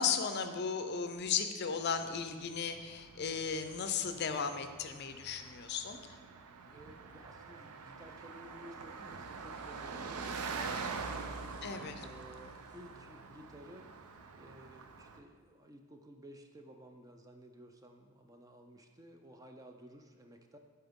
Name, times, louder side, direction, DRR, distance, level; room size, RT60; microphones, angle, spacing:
voice 1, 0.0-6.0 11.6-12.1, left 6 dB, 50° left, 8 dB, 0.5 m, -35 dB
Car passing by, 2.0-15.2, right 4 dB, 90° right, 0.5 m, -45 dB
voice 2, 6.7-11.4 12.0-13.9 14.4-20.6, right 1 dB, 15° right, 4 dB, 0.4 m, -54 dB
11.5 x 4.4 x 3.6 m, 1.5 s
head